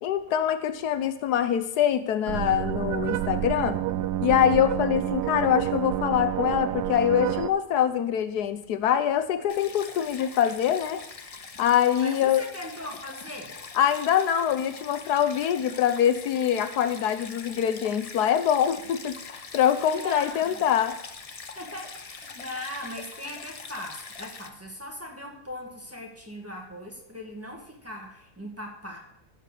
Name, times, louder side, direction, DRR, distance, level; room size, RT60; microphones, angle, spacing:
voice 1, 0.0-3.8 4.2-11.0 11.6-12.4 13.7-21.0, left 9 dB, 80° left, 11 dB, 1.2 m, -24 dB
sound 1, 2.3-7.5, right 13 dB, 80° right, 1.1 m, -28 dB
Stream, 9.5-24.5, left 4 dB, 40° left, 0.5 m, -43 dB
voice 2, 12.0-13.6 20.0-20.6 21.5-29.0, left 1 dB, 10° right, -1 dB, 1.7 m, -39 dB
15.0 x 5.0 x 6.7 m, 0.80 s
omnidirectional pair, 1.7 m